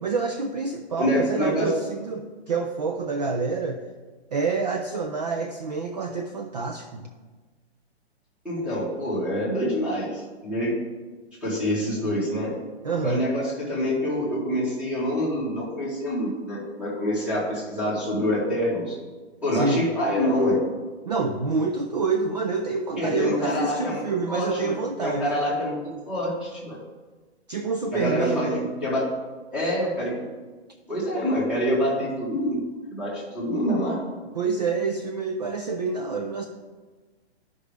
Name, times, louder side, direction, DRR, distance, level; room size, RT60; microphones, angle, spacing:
voice 1, 0.0-3.8 4.3-7.1 12.8-13.2 19.5-19.9 21.1-25.3 27.5-28.7 34.3-36.5, right 4 dB, 40° right, 5 dB, 0.4 m, -27 dB
voice 2, 1.0-1.7 8.4-10.7 11.4-12.5 13.0-19.0 19.4-20.6 23.0-25.8 26.0-26.8 27.9-29.0 29.5-30.1 30.9-32.6 32.9-34.0, equal, 5° right, -8 dB, 1.4 m, -26 dB
12.0 x 5.2 x 3.4 m, 1.3 s
hypercardioid pair, 175°, 33 cm